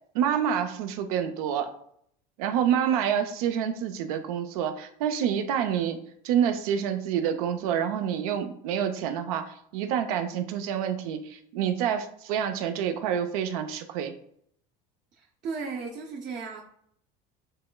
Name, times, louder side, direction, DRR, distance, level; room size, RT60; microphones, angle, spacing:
voice 1, 0.1-1.7 2.4-6.0 6.2-14.1, right 9 dB, 90° right, 8 dB, 0.5 m, -27 dB
voice 2, 15.2-16.6, right 4 dB, 45° right, 0 dB, 0.6 m, -35 dB
6.6 x 3.1 x 2.2 m, 0.69 s
supercardioid pair, 115°, 18 cm